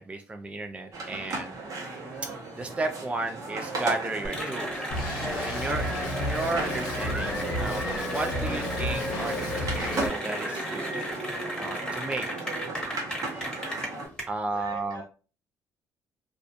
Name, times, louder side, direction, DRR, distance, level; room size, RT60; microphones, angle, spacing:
voice 1, 0.0-1.6 2.1-4.8 5.3-11.0 11.6-12.3 13.3-13.5 14.3-15.0, right 2 dB, 15° right, 0.4 m, -34 dB
sound 1, 0.9-14.1, right 3 dB, 55° right, 1.0 m, -37 dB
Cheering / Applause, 4.2-14.2, equal, 10° left, 1.1 m, -34 dB
Drum kit, 4.9-10.1, left 1 dB, 75° left, 0.7 m, -33 dB
voice 2, 14.5-15.0, right 2 dB, 75° right, 1.4 m, -46 dB
2.4 x 2.4 x 2.5 m
supercardioid pair, 70°, 7 cm